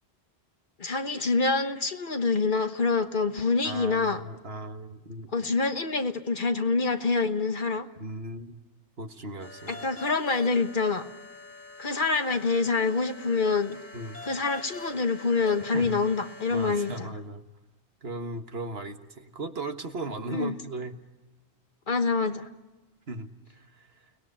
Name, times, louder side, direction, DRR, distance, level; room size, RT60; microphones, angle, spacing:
voice 1, 0.8-4.2 5.3-7.9 9.7-11.1 11.8-13.8 14.2-17.1 20.3-20.5 21.9-22.5, left 4 dB, 50° left, 8 dB, 1.3 m, -26 dB
voice 2, 3.6-5.3 8.0-8.6 9.0-9.8 13.9-14.2 15.7-16.0 16.5-17.4 18.0-21.0 23.1-24.1, right 2 dB, 60° right, 6 dB, 1.7 m, -37 dB
sound 1, 9.4-17.0, left 2 dB, 10° left, 1.7 m, -45 dB
30.0 x 20.0 x 10.0 m, 1.1 s
omnidirectional pair, 1.1 m